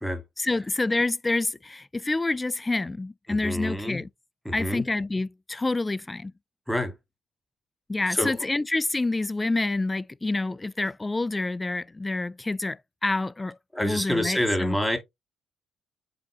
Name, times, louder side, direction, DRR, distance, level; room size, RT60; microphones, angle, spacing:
voice 1, 0.4-4.1 4.5-6.3 7.9-14.8, left 2 dB, 20° left, 0.4 m, -28 dB
voice 2, 3.3-4.0 4.4-4.8 6.7-6.9 8.1-8.5 13.7-15.0, equal, ahead, 2.2 m, -27 dB
7.6 x 4.3 x 2.8 m
hypercardioid pair, 55°, 0 cm